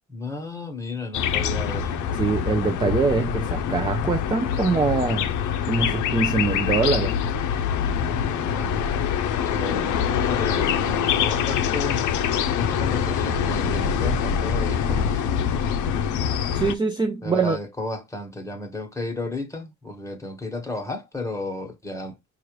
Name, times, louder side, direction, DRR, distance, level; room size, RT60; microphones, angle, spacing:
voice 1, 0.1-2.1 4.7-4.8 8.0-9.1 9.4-12.1 12.6-15.4 17.2-22.2, left 2 dB, 10° left, 1.2 m, -33 dB
sound 1, 1.1-16.8, left 8 dB, 75° left, 0.6 m, -24 dB
voice 2, 2.1-5.3 5.6-7.1 16.5-17.6, right 4 dB, 15° right, 0.4 m, -23 dB
4.4 x 2.5 x 3.1 m
cardioid pair, 90°, 30 cm